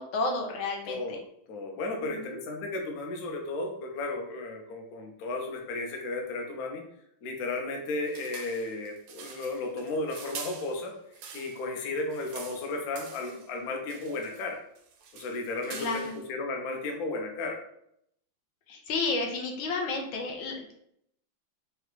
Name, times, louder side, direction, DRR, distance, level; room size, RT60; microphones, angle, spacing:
voice 1, 0.0-1.2 2.0-2.4 15.7-16.2 18.7-20.7, left 3 dB, 80° left, 0 dB, 1.4 m, -32 dB
voice 2, 0.8-6.8 7.2-10.9 11.3-14.6 15.1-17.6, left 2 dB, 65° left, 2 dB, 1.0 m, -34 dB
sound 1, 8.0-11.7 12.0-13.5 13.9-14.5 14.8-16.3, right 6 dB, 75° right, 1.2 m, -45 dB
4.9 x 2.3 x 3.1 m, 0.72 s
omnidirectional pair, 2.2 m